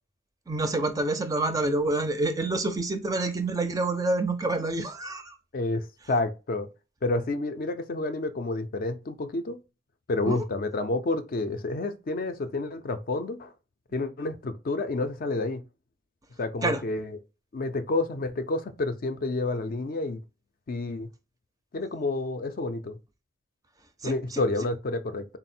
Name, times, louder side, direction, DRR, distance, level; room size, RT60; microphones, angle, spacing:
voice 1, 0.5-5.4 10.3-10.4 16.6-16.8 24.0-24.4, right 2 dB, 20° right, 0.4 m, -27 dB
voice 2, 5.5-6.7 7.0-9.6 10.1-13.5 13.9-15.6 16.4-17.1 17.5-20.2 20.7-21.1 21.7-23.0 24.0-25.2, left 2 dB, 45° left, 0.4 m, -29 dB
3.9 x 2.0 x 4.2 m
head